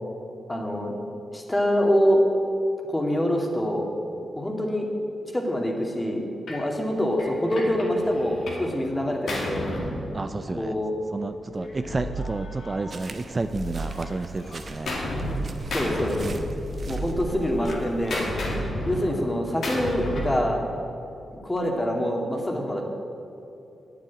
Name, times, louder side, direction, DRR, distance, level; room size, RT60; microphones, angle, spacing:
voice 1, 0.5-1.0 1.3-2.2 2.9-3.9 4.4-4.9 5.3-6.2 6.5-9.7 10.5-10.9 15.7-16.2 16.8-18.2 18.8-20.6 21.3-22.8, equal, 20° left, 1 dB, 2.2 m, -25 dB
Gunshot gunfire, 6.5-6.7 7.2-8.7 9.0-10.7 11.6-13.5 13.8-15.4 15.7-16.9 17.2-20.4, left 1 dB, 75° left, 2.5 m, -33 dB
voice 2, 10.1-10.7 11.1-15.0, right 3 dB, 35° right, 9 dB, 0.5 m, -31 dB
sound 1, 11.5-12.6 13.1-14.2 14.7-15.8 16.3-17.4 17.9-19.0 19.5-20.6, right 2 dB, 15° right, 2.1 m, -36 dB
sound 2, 12.9-18.2, right 2 dB, 55° right, 1.0 m, -41 dB
8.9 x 7.7 x 8.4 m, 2.8 s
cardioid pair, 50°, 0 cm